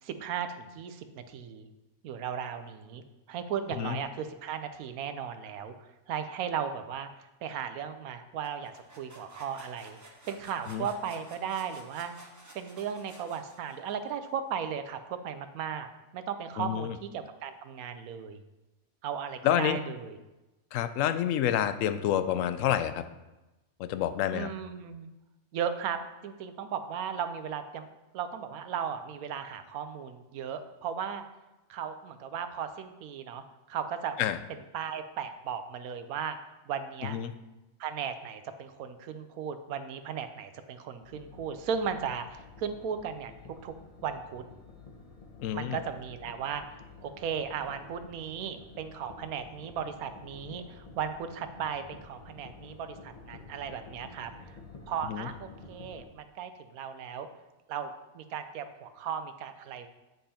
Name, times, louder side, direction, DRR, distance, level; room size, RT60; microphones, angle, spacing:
voice 1, 0.0-1.7 2.0-7.1 7.4-12.1 12.5-15.9 16.1-18.4 19.0-20.2 24.3-25.1 25.5-27.9 28.1-31.2 31.7-34.2 34.7-36.4 36.7-37.2 37.8-43.7 44.0-44.4 45.5-54.3 54.9-57.3 57.7-59.9, right 7 dB, 85° right, 9 dB, 1.2 m, -36 dB
sound 1, 8.4-14.1, right 1 dB, 15° right, 0.9 m, -53 dB
voice 2, 16.6-17.0 19.4-19.8 20.7-23.0 23.8-24.5 34.2-34.4 37.0-37.3 45.4-45.8 55.0-55.3, left 11 dB, 70° left, 11 dB, 0.9 m, -28 dB
sound 2, 41.0-56.0, left 3 dB, 30° left, 0.9 m, -51 dB
9.1 x 5.4 x 4.3 m, 1.0 s
omnidirectional pair, 1.5 m